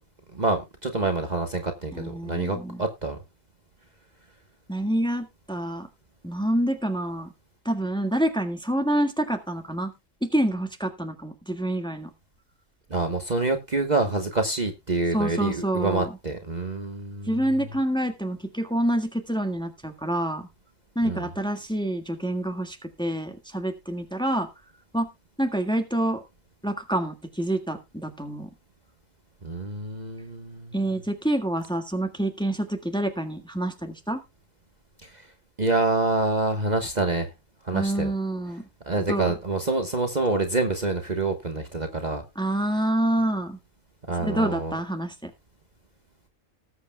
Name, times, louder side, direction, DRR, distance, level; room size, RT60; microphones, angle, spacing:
voice 1, 0.3-3.2 12.9-17.4 21.0-21.3 29.4-30.8 35.0-35.3 35.6-37.3 37.6-38.1 38.9-42.2 44.1-44.7, right 3 dB, 35° right, 5 dB, 1.3 m, -27 dB
voice 2, 1.9-2.8 4.7-5.9 6.2-7.3 7.6-9.9 10.2-12.1 15.1-16.1 17.3-20.5 20.9-24.5 24.9-25.1 25.4-26.2 26.6-28.5 30.7-34.2 37.7-38.7 39.1-39.3 42.3-43.6 44.2-45.3, right 1 dB, 5° left, 6 dB, 1.5 m, -27 dB
19.0 x 8.2 x 2.3 m, 0.24 s
omnidirectional pair, 1.3 m